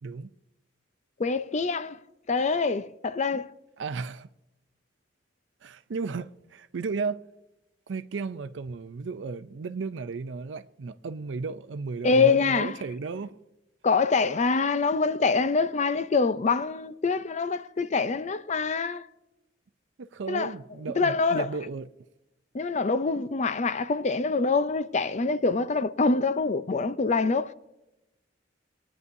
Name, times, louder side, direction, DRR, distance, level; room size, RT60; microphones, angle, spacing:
voice 1, 1.2-2.0 2.3-3.5 12.0-12.8 13.8-19.1 20.3-20.5 21.0-21.5 22.5-27.5, left 4 dB, 40° left, 0.5 m, -25 dB
voice 2, 3.8-4.3 5.6-7.2 7.9-13.4 20.0-21.9, right 4 dB, 75° right, 0.5 m, -34 dB
22.0 x 9.6 x 2.7 m
head